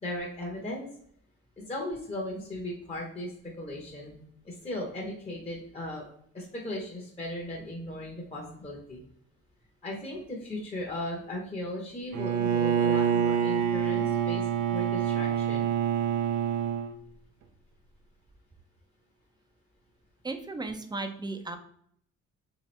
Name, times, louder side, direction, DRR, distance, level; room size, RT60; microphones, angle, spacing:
voice 1, 0.0-0.9 1.6-4.2 4.4-6.1 6.3-9.0 9.8-15.7, left 1 dB, 20° left, -2 dB, 0.9 m, -37 dB
Bowed string instrument, 12.1-16.9, right 8 dB, 65° right, 0.5 m, -26 dB
voice 2, 20.2-21.6, right 3 dB, 15° right, 7 dB, 0.5 m, -35 dB
3.4 x 2.9 x 3.2 m, 0.66 s
cardioid pair, 90°, 30 cm